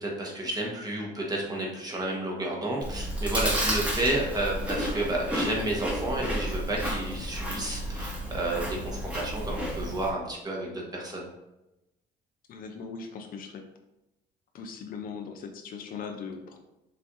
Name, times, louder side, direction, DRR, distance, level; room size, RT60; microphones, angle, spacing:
voice 1, 0.0-11.3, right 1 dB, 25° right, -2 dB, 1.2 m, -31 dB
Chewing mastication, 2.8-10.1, equal, 5° right, 1.2 m, -31 dB
voice 2, 12.5-13.6 14.5-16.6, left 5 dB, 55° left, 5 dB, 0.6 m, -39 dB
5.7 x 3.3 x 2.6 m, 0.94 s
cardioid pair, 110°, 17 cm